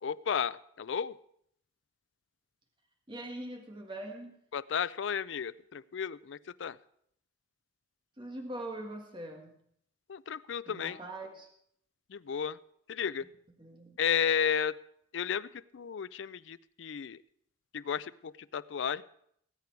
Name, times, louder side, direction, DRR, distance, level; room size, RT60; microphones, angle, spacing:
voice 1, 0.0-1.2 4.5-6.8 10.1-11.0 12.1-12.6 12.9-13.3 14.0-14.8 15.1-17.2 17.7-19.0, left 7 dB, 65° left, 17 dB, 0.4 m, -33 dB
voice 2, 3.1-4.3 8.2-9.6 10.7-11.5 13.6-14.0, right 1 dB, 25° right, 2 dB, 1.5 m, -42 dB
19.0 x 8.4 x 4.6 m, 0.71 s
head